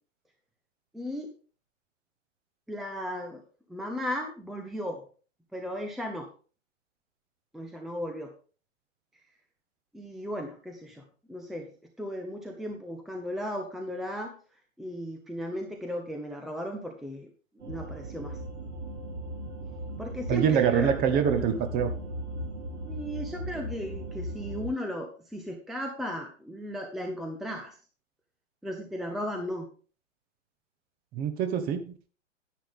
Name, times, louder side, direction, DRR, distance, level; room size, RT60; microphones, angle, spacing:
voice 1, 0.9-1.3 2.7-3.4 3.7-5.0 5.5-6.3 7.5-8.3 9.9-11.0 11.3-11.7 12.0-14.4 14.8-17.3 17.6-18.4 20.0-21.4 22.9-27.7 28.6-29.7, equal, ahead, 3 dB, 0.8 m, -36 dB
sound 1, 17.6-24.7, right 1 dB, 65° right, 3.8 m, -37 dB
voice 2, 20.3-21.9 31.1-31.8, right 8 dB, 25° right, 9 dB, 1.2 m, -25 dB
10.0 x 9.8 x 3.6 m, 0.38 s
figure-of-eight pair, 115°, 38 cm